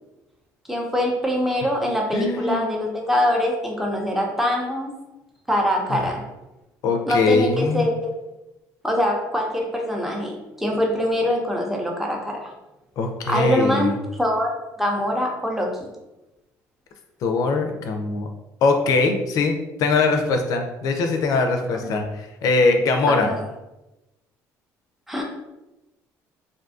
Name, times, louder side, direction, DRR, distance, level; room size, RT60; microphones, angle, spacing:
voice 1, 0.7-4.9 5.5-6.2 7.1-7.9 8.8-12.5 13.3-14.5 14.8-15.9 21.8-21.9 23.1-23.4 25.1-25.2, left 1 dB, 5° right, 0 dB, 0.6 m, -23 dB
voice 2, 2.1-2.7 5.9-6.0 6.8-7.9 13.0-13.9 17.2-18.3 18.6-19.5 19.8-23.3, left 3 dB, 65° left, 4 dB, 0.4 m, -21 dB
2.6 x 2.3 x 2.5 m, 0.98 s
cardioid pair, 100°, 7 cm